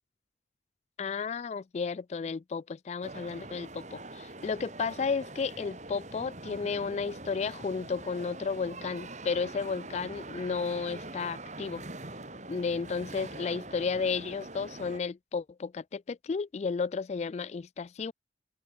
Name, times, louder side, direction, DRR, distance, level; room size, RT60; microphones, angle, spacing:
voice 1, 1.0-11.8 12.5-18.1, left 5 dB, 40° left, 0.3 m, -33 dB
sound 1, 3.0-15.0, right 2 dB, 40° right, 7.3 m, -44 dB
open air
head